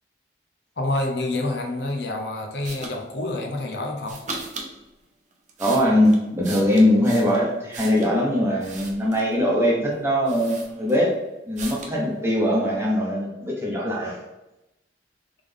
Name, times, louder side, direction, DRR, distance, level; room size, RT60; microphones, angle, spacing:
voice 1, 0.8-4.2, left 2 dB, 65° left, 3 dB, 0.6 m, -27 dB
sound 1, 2.6-3.0 4.0-4.7 5.3-8.2 8.6-9.4 9.9-10.0 10.3-11.1 11.6-12.0, right 3 dB, 40° right, 0.7 m, -38 dB
voice 2, 5.6-11.1 11.4-14.2, left 1 dB, 15° right, -3 dB, 0.9 m, -21 dB
3.6 x 3.3 x 3.6 m, 0.96 s
head